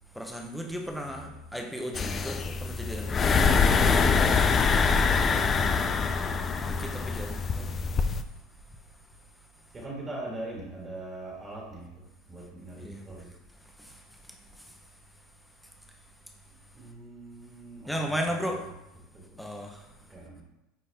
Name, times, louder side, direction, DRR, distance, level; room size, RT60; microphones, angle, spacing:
voice 1, 0.1-3.8 6.6-7.4 12.8-13.0 13.6-14.8 17.9-18.6 19.4-19.9, equal, ahead, 1 dB, 0.8 m, -36 dB
sound 1, 1.9-8.2, left 5 dB, 20° left, 0.4 m, -24 dB
voice 2, 9.7-12.0 12.3-13.3 16.7-18.1 19.1-19.2 20.1-20.4, right 2 dB, 15° right, -3 dB, 1.7 m, -41 dB
9.6 x 4.1 x 3.5 m, 0.96 s
supercardioid pair, 160°, 0 cm